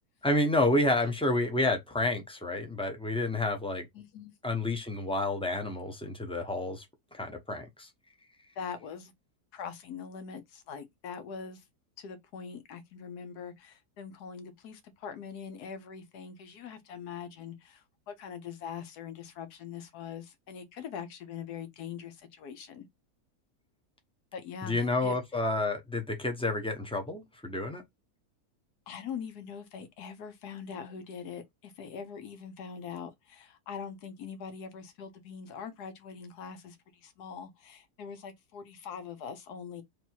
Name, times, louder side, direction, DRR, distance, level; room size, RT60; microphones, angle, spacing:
voice 1, 0.2-3.9 4.4-6.8 7.1-7.9 24.6-27.8, left 2 dB, 10° left, 0.4 m, -29 dB
voice 2, 3.9-4.3 8.6-9.1 9.5-11.6 12.0-22.8 24.3-25.2 28.9-36.8 37.0-39.8, left 7 dB, 90° left, 1.4 m, -42 dB
3.3 x 2.8 x 4.4 m
omnidirectional pair, 1.6 m